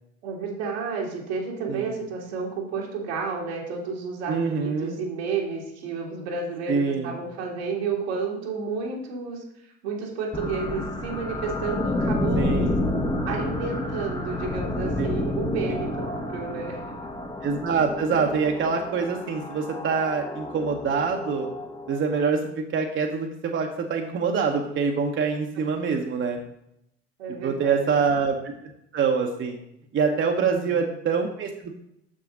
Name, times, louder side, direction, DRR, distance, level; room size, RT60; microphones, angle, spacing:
voice 1, 0.2-12.6 13.3-16.8 27.2-28.0 30.4-30.8, right 4 dB, 75° right, -1 dB, 1.7 m, -31 dB
voice 2, 4.3-5.0 6.7-7.1 12.4-12.7 15.0-15.1 17.4-21.5 21.9-26.4 27.4-28.5 28.9-29.6 29.9-31.7, right 5 dB, 40° right, 2 dB, 1.0 m, -25 dB
sound 1, 10.3-22.3, left 2 dB, 15° left, 0.8 m, -30 dB
6.8 x 6.1 x 3.8 m, 0.78 s
hypercardioid pair, 60°, 32 cm